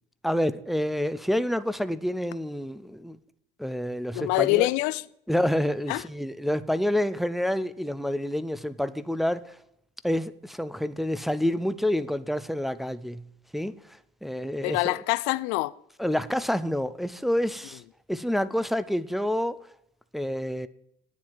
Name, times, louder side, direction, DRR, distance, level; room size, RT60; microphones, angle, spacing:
voice 1, 0.2-3.2 3.6-4.7 5.3-9.4 10.0-13.2 13.5-13.7 14.2-15.0 16.0-17.8 18.1-19.6 20.1-20.7, left 1 dB, ahead, 0.4 m, -28 dB
voice 2, 4.1-5.0 5.9-6.0 14.6-15.7, left 21 dB, 85° left, 0.5 m, -25 dB
9.3 x 7.5 x 7.9 m
cardioid pair, 135°, 18 cm